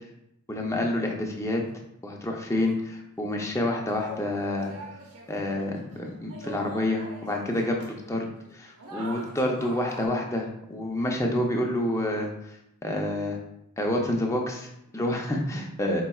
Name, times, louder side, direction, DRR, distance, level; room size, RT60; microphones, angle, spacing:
voice 1, 0.5-1.6 2.0-4.7 5.3-8.3 8.5-12.3 12.8-13.4 13.8-16.0, left 1 dB, 15° left, 1 dB, 0.5 m, -28 dB
sound 1, 2.2-3.0 3.5-10.1, right 1 dB, 85° right, 0.8 m, -45 dB
4.6 x 4.2 x 2.3 m, 0.79 s
head